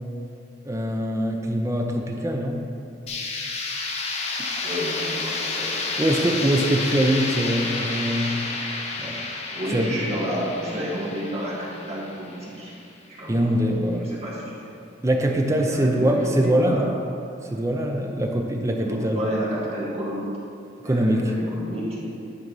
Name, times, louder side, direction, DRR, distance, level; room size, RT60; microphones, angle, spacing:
voice 1, 0.6-2.7 6.0-8.4 9.0-9.2 9.7-10.0 13.3-14.1 15.0-16.9 17.4-19.3 20.8-21.4, right 1 dB, 15° right, 2 dB, 0.6 m, -23 dB
sound 1, 3.1-12.8, left 3 dB, 35° left, 0.7 m, -30 dB
voice 2, 4.6-5.7 9.5-12.7 13.1-13.6 13.9-14.5 15.3-16.9 18.8-20.3 20.8-22.1, equal, 35° right, -6 dB, 2.0 m, -31 dB
11.0 x 4.2 x 5.5 m, 2.5 s
head